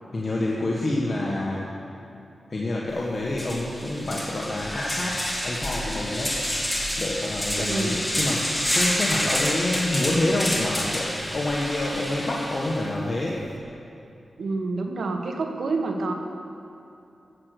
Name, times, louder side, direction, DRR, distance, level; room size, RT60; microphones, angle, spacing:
voice 1, 0.1-1.6 2.5-6.4 7.0-13.4, left 1 dB, 45° left, -4 dB, 1.6 m, -27 dB
sound 1, 2.9-3.0 3.3-12.9, equal, 10° left, 2.3 m, -28 dB
voice 2, 7.6-8.0 14.4-16.1, right 3 dB, 80° right, 3 dB, 1.4 m, -28 dB
14.5 x 7.7 x 6.7 m, 2.8 s
wide cardioid pair, 85°, 0 cm